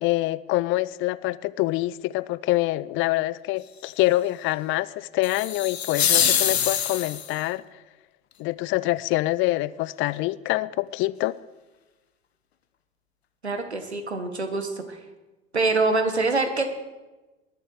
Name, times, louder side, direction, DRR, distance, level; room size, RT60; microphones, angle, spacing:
voice 1, 0.0-7.6 8.4-11.4, left 18 dB, 40° left, 0.5 m, -25 dB
sound 1, 5.2-7.4, left 9 dB, 75° left, 1.1 m, -24 dB
voice 2, 13.4-15.0 15.5-16.8, right 3 dB, 85° right, 1.5 m, -25 dB
20.0 x 11.0 x 4.8 m
figure-of-eight pair, 70°, 32 cm